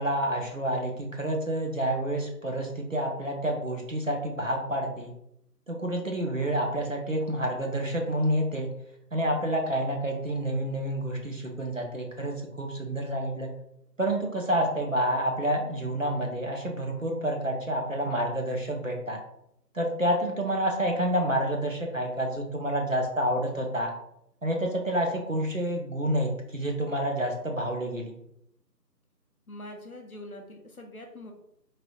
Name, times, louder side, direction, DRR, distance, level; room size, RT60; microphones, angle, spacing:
voice 1, 0.0-5.1 5.7-8.7 9.1-13.5 14.0-19.2 19.7-23.9 24.4-28.2, right 1 dB, 50° right, 1 dB, 0.5 m, -28 dB
voice 2, 29.5-31.3, left 1 dB, 60° left, 2 dB, 0.5 m, -43 dB
3.2 x 2.6 x 2.2 m, 0.75 s
figure-of-eight pair, 175°, 50 cm